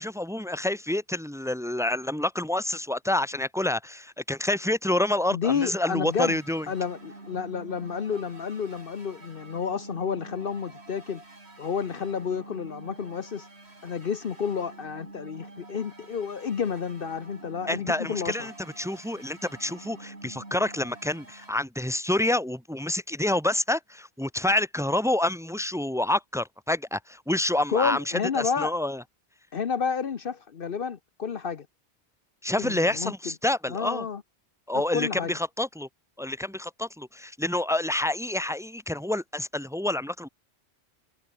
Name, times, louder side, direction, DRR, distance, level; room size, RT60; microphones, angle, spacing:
voice 1, 0.0-6.7 17.7-29.0 32.4-34.0 34.7-35.9 36.2-40.3, left 1 dB, 5° right, 1.3 m, -28 dB
voice 2, 5.3-6.4 6.7-11.2 11.6-13.5 13.8-18.5 27.7-28.7 29.5-31.7 32.6-33.1 33.7-34.2 34.7-35.3, left 6 dB, 60° left, 1.0 m, -30 dB
sound 1, 6.1-21.5, right 2 dB, 75° right, 4.3 m, -47 dB
omnidirectional pair, 1.1 m